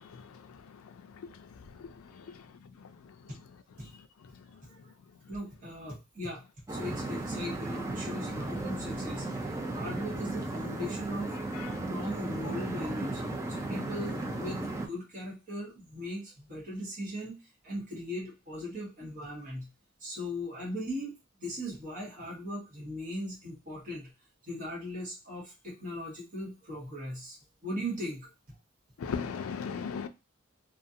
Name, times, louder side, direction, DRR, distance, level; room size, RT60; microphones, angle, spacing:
voice 1, 1.7-2.4 11.5-11.7 29.0-30.1, left 6 dB, 75° left, 0.4 m, -37 dB
voice 2, 5.3-6.4 6.7-11.4 11.9-13.2 13.5-17.4 17.6-19.7 20.0-24.1 24.4-27.4 27.6-28.3, equal, 40° right, 1.1 m, -39 dB
sound 1, 6.7-14.9, right 2 dB, 15° right, 0.4 m, -35 dB
2.4 x 2.4 x 2.6 m
head